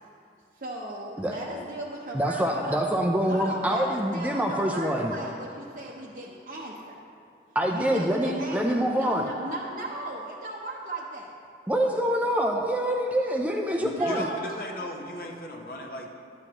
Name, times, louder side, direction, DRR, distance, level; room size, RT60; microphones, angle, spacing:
voice 1, 0.5-2.8 3.3-7.0 7.7-11.3 13.9-14.4, right 1 dB, 50° right, -4 dB, 0.7 m, -37 dB
voice 2, 2.1-5.1 7.6-9.2 11.7-14.3, equal, 10° right, 1 dB, 0.4 m, -25 dB
voice 3, 13.8-16.1, left 1 dB, 50° left, 1 dB, 0.9 m, -36 dB
12.0 x 8.1 x 2.9 m, 2.5 s
head